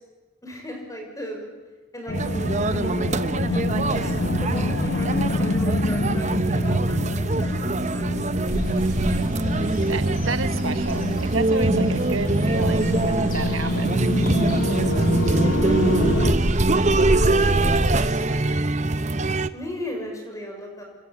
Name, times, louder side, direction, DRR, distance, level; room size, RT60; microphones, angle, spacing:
voice 1, 0.4-1.5 1.9-4.1 4.4-8.3 15.4-16.5 17.4-18.4 19.5-20.8, equal, 15° left, 2 dB, 6.1 m, -36 dB
sound 1, 2.1-16.3, left 2 dB, 55° left, 0.8 m, -28 dB
sound 2, 2.1-19.5, right 2 dB, 35° right, 0.8 m, -23 dB
sound 3, 8.5-18.2, equal, 40° left, 6.2 m, -30 dB
voice 2, 9.6-14.1, right 3 dB, 85° right, 10 dB, 1.4 m, -31 dB
27.0 x 25.0 x 8.7 m, 1.3 s
head